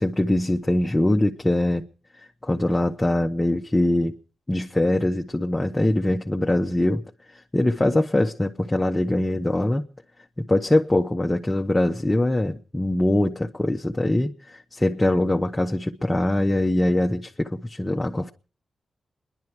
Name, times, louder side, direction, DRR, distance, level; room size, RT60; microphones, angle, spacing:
voice 1, 0.0-1.8 2.4-4.1 4.5-7.0 7.5-9.8 10.5-18.3, left 1 dB, 15° left, 1.0 m, -22 dB
28.0 x 11.0 x 4.6 m
cardioid pair, 75°, 0 cm